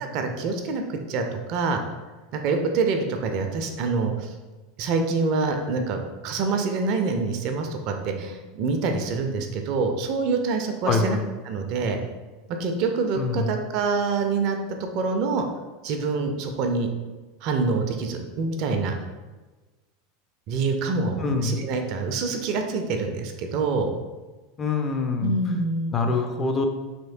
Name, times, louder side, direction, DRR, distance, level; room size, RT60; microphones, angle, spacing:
voice 1, 0.1-1.8 2.3-4.3 4.8-11.2 11.5-12.0 12.6-14.6 14.9-15.4 15.8-16.9 17.4-18.9 20.5-23.9 25.2-26.0, right 4 dB, 45° right, 5 dB, 0.3 m, -26 dB
voice 2, 10.9-11.2 13.2-13.5 21.2-21.6 24.6-25.3 25.9-26.7, left 3 dB, 25° left, 4 dB, 0.4 m, -24 dB
3.0 x 2.8 x 2.6 m, 1.2 s
figure-of-eight pair, 80°, 0 cm